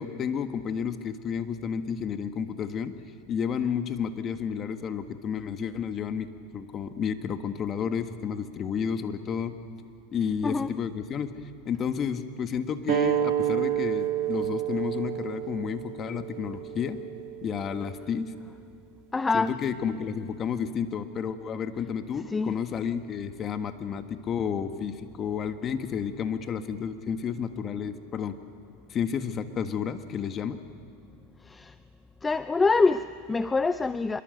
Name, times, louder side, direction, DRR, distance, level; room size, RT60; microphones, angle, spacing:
voice 1, 0.0-2.9 3.3-9.5 10.1-17.0 17.4-18.3 19.3-28.4 28.9-30.6, left 7 dB, 35° left, 8 dB, 1.7 m, -31 dB
voice 2, 10.4-10.7 19.1-19.5 22.3-22.6 31.4-31.7 32.2-34.2, left 3 dB, 15° left, 13 dB, 0.5 m, -25 dB
sound 1, 12.9-18.0, right 12 dB, 60° right, 1.4 m, -30 dB
26.0 x 23.0 x 8.0 m, 2.5 s
supercardioid pair, 115°, 0 cm